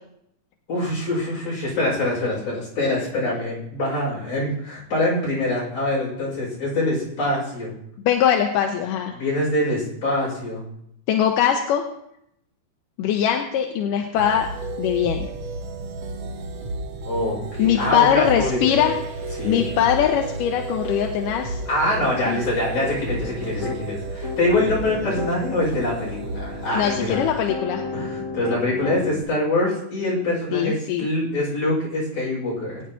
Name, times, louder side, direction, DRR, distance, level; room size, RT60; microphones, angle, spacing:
voice 1, 0.7-7.7 9.1-10.7 17.1-18.7 19.4-19.6 21.7-27.2 27.9-32.8, left 1 dB, 60° left, -5 dB, 7.2 m, -24 dB
voice 2, 8.1-9.1 11.1-11.8 13.0-14.5 14.8-15.3 17.6-19.0 19.4-21.6 22.3-22.4 26.7-27.8 30.5-31.1, left 9 dB, 85° left, 3 dB, 2.4 m, -21 dB
sound 1, 14.1-27.5, right 2 dB, 85° right, 1.0 m, -32 dB
Piano, 22.8-23.8 24.2-25.4 26.0-29.2, left 3 dB, 40° left, 1.2 m, -33 dB
21.5 x 9.5 x 2.9 m, 0.76 s
omnidirectional pair, 3.8 m